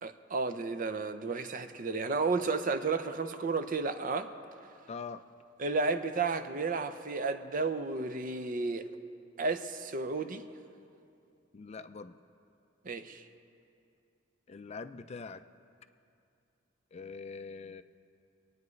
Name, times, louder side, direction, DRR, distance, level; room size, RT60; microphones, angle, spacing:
voice 1, 0.0-4.3 5.6-8.9 9.4-10.4 12.9-13.2, right 4 dB, 45° right, 9 dB, 0.6 m, -32 dB
voice 2, 4.9-5.2 11.5-12.2 14.5-15.4 16.9-17.8, left 4 dB, 35° left, 11 dB, 0.4 m, -43 dB
25.5 x 9.4 x 3.2 m, 2.6 s
head